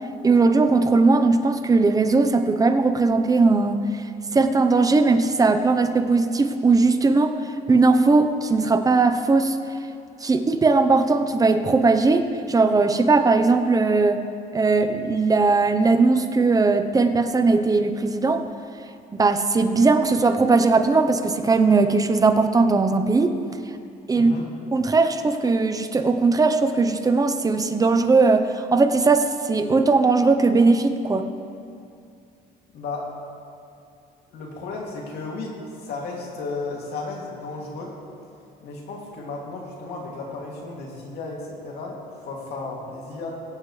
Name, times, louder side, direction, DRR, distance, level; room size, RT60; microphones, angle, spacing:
voice 1, 0.2-4.1 4.3-7.3 7.7-9.6 10.2-14.2 14.5-18.4 19.1-23.4 24.1-24.3 24.7-31.3, right 3 dB, 20° right, 8 dB, 0.8 m, -19 dB
voice 2, 24.1-24.5 32.7-33.1 34.3-37.9 38.6-43.3, left 3 dB, 70° left, -2 dB, 2.6 m, -34 dB
22.5 x 8.1 x 3.3 m, 2.5 s
cardioid pair, 110°, 17 cm